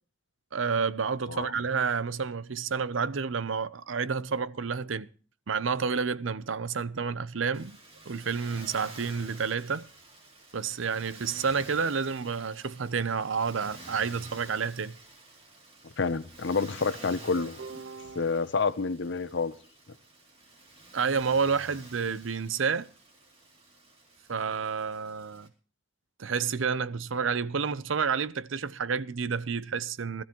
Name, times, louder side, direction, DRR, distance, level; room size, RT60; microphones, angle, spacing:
voice 1, 0.5-5.1 5.5-7.8 8.1-9.9 10.5-15.0 17.4-18.3 20.9-22.9 24.3-25.5 26.2-30.2, right 5 dB, 75° right, 0.7 m, -30 dB
Motor vehicle (road), 7.5-25.5, right 2 dB, 30° right, 2.8 m, -50 dB
voice 2, 16.0-17.6 18.2-19.6, left 4 dB, 65° left, 0.8 m, -28 dB
20.0 x 13.5 x 3.0 m
head